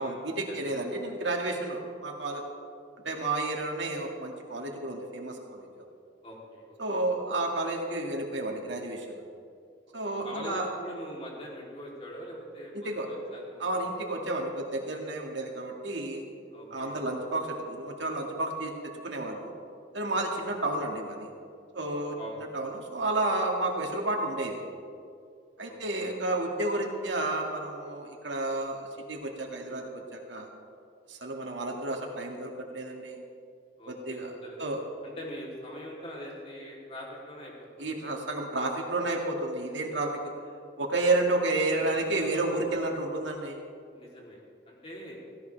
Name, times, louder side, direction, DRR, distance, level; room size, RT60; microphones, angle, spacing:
voice 1, 0.0-2.4 3.0-5.6 6.8-9.2 9.9-10.7 12.7-13.1 13.6-16.2 16.7-18.7 19.0-19.5 19.9-21.3 21.7-22.2 22.5-24.6 25.6-30.5 31.1-33.2 33.9-34.3 34.6-34.8 37.8-40.2 40.8-43.6, right 2 dB, 90° right, 1 dB, 2.3 m, -31 dB
voice 2, 6.2-6.8 10.0-13.9 16.5-17.2 22.2-22.5 25.7-26.1 33.8-34.6 35.0-37.9 41.7-41.8 43.9-44.4 44.7-45.2, equal, 35° left, -4 dB, 3.4 m, -43 dB
17.0 x 16.5 x 3.5 m, 2.3 s
head